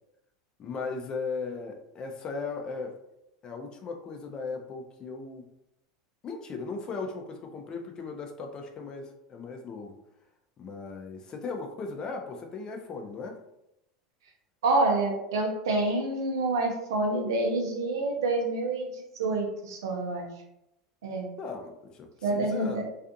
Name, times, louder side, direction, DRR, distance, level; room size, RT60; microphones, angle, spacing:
voice 1, 0.6-2.9 3.4-5.5 6.2-10.0 10.6-13.4 21.4-22.8, left 4 dB, 35° left, 4 dB, 0.5 m, -37 dB
voice 2, 14.6-18.9 19.2-20.3 21.0-21.3 22.2-22.8, right 2 dB, 80° right, 1 dB, 0.6 m, -27 dB
2.4 x 2.4 x 2.6 m, 0.84 s
hypercardioid pair, 90°, 2 cm